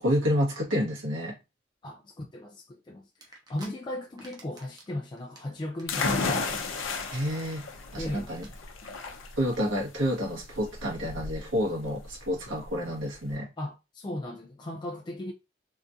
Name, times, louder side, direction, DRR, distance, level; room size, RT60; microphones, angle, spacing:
voice 1, 0.0-1.4 7.1-8.5 9.4-13.5, equal, 75° right, 1.6 m, -29 dB
voice 2, 1.8-6.7 8.0-8.3 13.6-15.3, left 1 dB, 20° left, 0.3 m, -37 dB
sound 1, 3.2-3.7 4.0-4.9 5.2-6.8 7.1-7.4 7.7-7.8 8.0-8.1 8.4-8.5 8.8-9.0, right 2 dB, 20° right, 0.7 m, -49 dB
sound 2, 5.9-13.4, left 4 dB, 80° left, 0.7 m, -34 dB
3.6 x 2.4 x 2.7 m
head